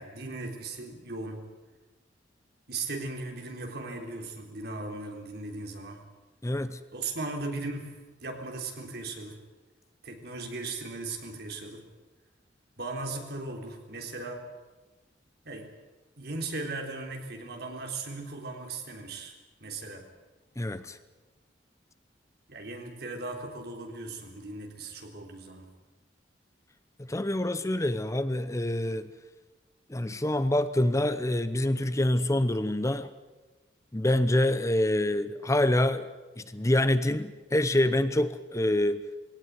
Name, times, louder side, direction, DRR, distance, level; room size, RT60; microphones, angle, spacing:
voice 1, 0.0-1.4 2.7-6.0 6.9-9.4 10.0-11.9 12.8-14.4 15.5-15.7 16.2-19.3 19.6-20.1 22.5-25.7, right 3 dB, 60° right, 3 dB, 3.6 m, -37 dB
voice 2, 6.4-6.8 20.6-21.0 27.0-29.1 29.9-33.1 33.9-36.1 36.4-39.0, left 1 dB, 15° left, 12 dB, 0.7 m, -26 dB
21.0 x 18.0 x 9.6 m, 1.2 s
head